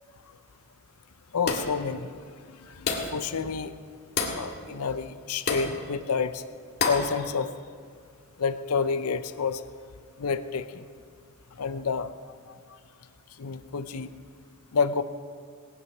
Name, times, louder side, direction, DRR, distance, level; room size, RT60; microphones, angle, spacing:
voice 1, 1.3-2.3 2.6-3.7 4.3-6.4 6.9-7.5 8.4-9.6 10.2-10.8 11.6-12.1 13.4-14.1 14.7-15.0, left 5 dB, 80° left, 11 dB, 0.7 m, -29 dB
sound 1, 1.5-1.8 2.9-3.2 4.2-4.5 5.5-5.7 6.8-7.1, left 4 dB, 50° left, 1.8 m, -28 dB
18.5 x 9.6 x 6.0 m, 2.2 s
head